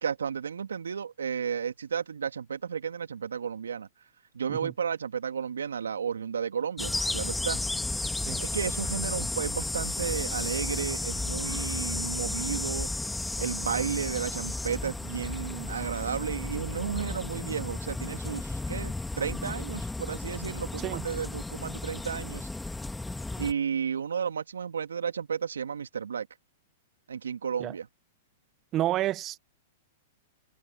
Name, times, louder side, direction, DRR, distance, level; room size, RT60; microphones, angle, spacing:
voice 1, 0.0-3.9 4.3-7.6 8.4-12.9 13.4-22.5 23.4-26.3 27.1-27.9, right 7 dB, 80° right, 2.6 m, -33 dB
sound 1, 6.8-23.5, left 2 dB, 5° left, 2.1 m, -33 dB
voice 2, 28.7-29.4, right 14 dB, 35° right, 1.5 m, -30 dB
hypercardioid pair, 110°, 0 cm